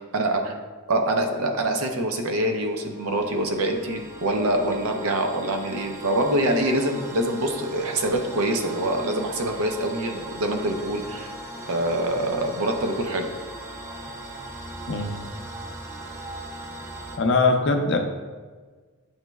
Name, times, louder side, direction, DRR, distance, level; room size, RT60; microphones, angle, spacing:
voice 1, 0.1-0.6 0.9-11.3 11.7-13.3, right 1 dB, 85° right, 4 dB, 0.6 m, -25 dB
sound 1, 2.0-17.2, right 1 dB, 10° right, 0.3 m, -39 dB
voice 2, 17.1-18.0, left 3 dB, 55° left, 5 dB, 0.5 m, -21 dB
7.8 x 3.0 x 2.3 m, 1.4 s
head